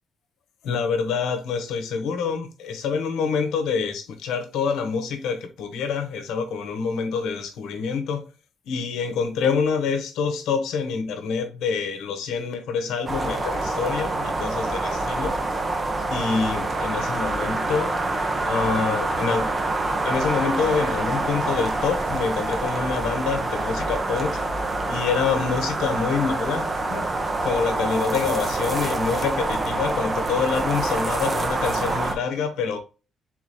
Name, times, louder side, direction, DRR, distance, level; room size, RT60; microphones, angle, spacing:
voice 1, 0.6-8.3 8.7-15.3 16.1-17.9 18.4-19.5 20.0-24.4 24.9-27.1 27.4-32.8, left 5 dB, 85° left, 1.0 m, -26 dB
sound 1, 13.1-32.2, right 2 dB, 30° right, 0.9 m, -26 dB
4.0 x 3.1 x 4.1 m
cardioid pair, 90°, 0 cm